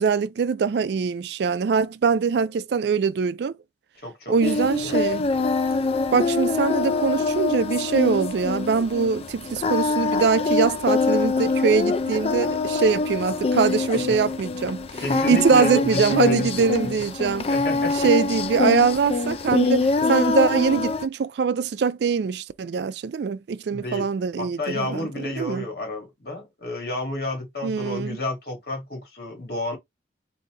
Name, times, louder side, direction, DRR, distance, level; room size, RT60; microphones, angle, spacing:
voice 1, 0.0-3.5 4.3-5.3 6.1-14.8 15.3-17.5 18.0-25.6 27.6-28.2, right 5 dB, 60° right, 0.3 m, -23 dB
voice 2, 4.0-5.4 15.0-16.9 17.5-18.1 23.7-24.1 24.4-29.8, left 2 dB, 55° left, 2.1 m, -31 dB
Singing, 4.4-21.1, left 3 dB, 30° left, 0.4 m, -24 dB
4.0 x 2.7 x 3.7 m
head